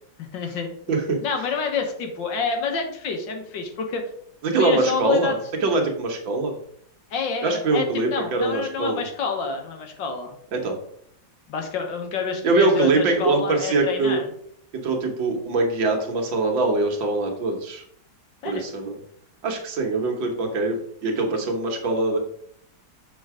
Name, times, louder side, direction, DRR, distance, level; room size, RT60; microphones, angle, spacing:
voice 1, 0.2-0.7 1.2-4.0 4.5-5.4 7.1-10.4 11.5-14.3 18.4-18.7, left 5 dB, 75° left, 4 dB, 1.8 m, -28 dB
voice 2, 0.9-1.2 4.4-6.6 7.4-9.0 10.5-10.8 12.4-14.2 14.7-17.8 18.4-19.0 19.4-20.8 21.0-22.2, right 3 dB, 85° right, 2 dB, 2.0 m, -23 dB
6.6 x 4.6 x 4.8 m, 0.66 s
omnidirectional pair, 2.0 m